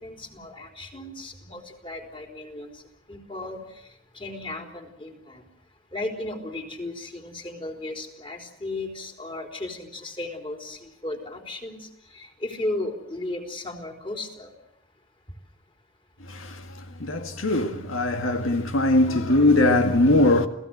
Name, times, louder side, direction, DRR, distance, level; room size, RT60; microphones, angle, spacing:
voice 1, 0.0-2.8 3.1-3.6 4.1-5.4 5.9-14.5, left 2 dB, 25° left, 4.1 m, -35 dB
voice 2, 16.2-20.5, left 2 dB, 90° left, 1.8 m, -21 dB
29.5 x 17.5 x 7.8 m
head